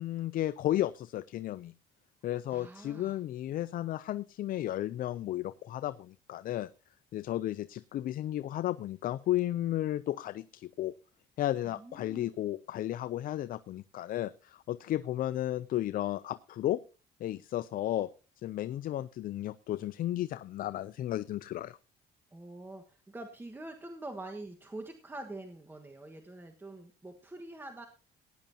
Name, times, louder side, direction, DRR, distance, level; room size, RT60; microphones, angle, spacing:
voice 1, 0.0-1.7 2.2-6.7 7.1-10.9 11.4-16.8 17.2-18.1 18.4-21.8, left 13 dB, 55° left, 15 dB, 0.5 m, -33 dB
voice 2, 2.5-3.2 11.7-12.3 22.3-27.9, right 2 dB, 10° right, 4 dB, 1.4 m, -45 dB
17.5 x 10.5 x 2.8 m, 0.32 s
cardioid pair, 110°, 17 cm